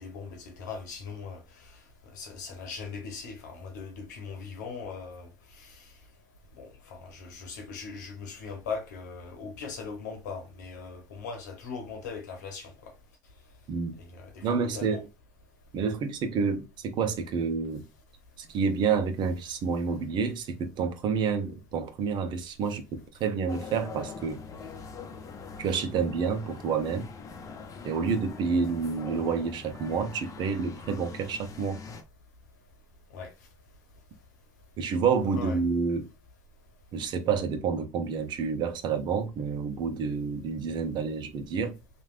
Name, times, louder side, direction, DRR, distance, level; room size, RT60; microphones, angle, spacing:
voice 1, 0.0-1.7 2.1-5.3 5.6-5.8 6.6-12.9 14.0-15.0 33.1-33.3 35.4-35.6, left 5 dB, 80° left, 0.9 m, -40 dB
voice 2, 14.4-15.1 15.7-17.8 18.4-24.4 25.6-27.1 27.8-31.8 34.8-36.1 36.9-41.7, right 5 dB, 55° right, 0.8 m, -29 dB
sound 1, 23.5-32.0, left 5 dB, 35° left, 0.7 m, -43 dB
3.2 x 2.5 x 2.4 m
hypercardioid pair, 70°, 9 cm